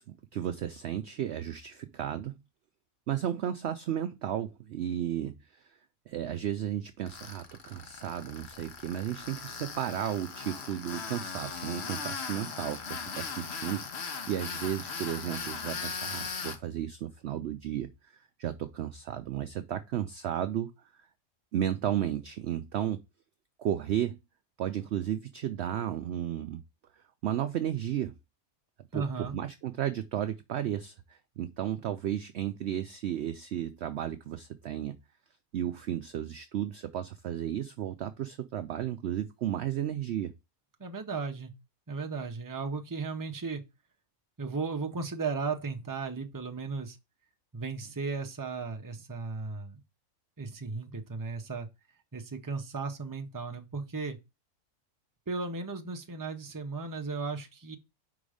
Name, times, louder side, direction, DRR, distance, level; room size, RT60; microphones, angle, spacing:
voice 1, 0.0-2.4 3.1-5.8 6.1-20.7 21.5-23.0 23.6-24.2 24.6-26.6 26.9-28.2 28.9-35.0 35.5-40.3, right 10 dB, 65° right, 0.7 m, -34 dB
Tools, 7.1-16.6, left 5 dB, 50° left, 1.1 m, -39 dB
voice 2, 28.9-29.4 40.8-41.5 41.9-43.6 44.4-47.0 47.5-49.8 50.4-51.7 52.1-54.2 55.3-57.8, right 4 dB, 20° right, 0.7 m, -35 dB
5.2 x 3.9 x 4.9 m
omnidirectional pair, 1.5 m